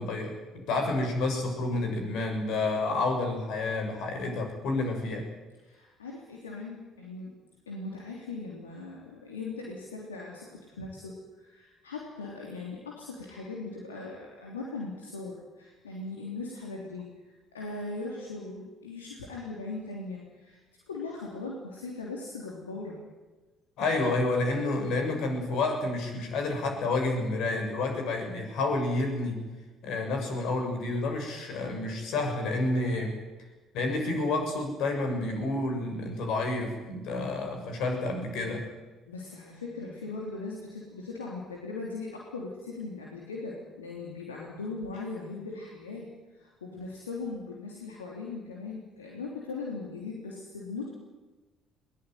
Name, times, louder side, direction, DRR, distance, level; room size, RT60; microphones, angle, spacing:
voice 1, 0.0-5.2 23.8-29.5 29.8-33.1 33.7-38.7, left 2 dB, 65° left, 4 dB, 6.8 m, -29 dB
voice 2, 5.6-7.4 7.7-20.6 20.9-23.0 39.1-50.9, left 3 dB, 85° left, -2 dB, 3.2 m, -39 dB
22.0 x 20.0 x 9.5 m, 1.2 s
hypercardioid pair, 50°, 0 cm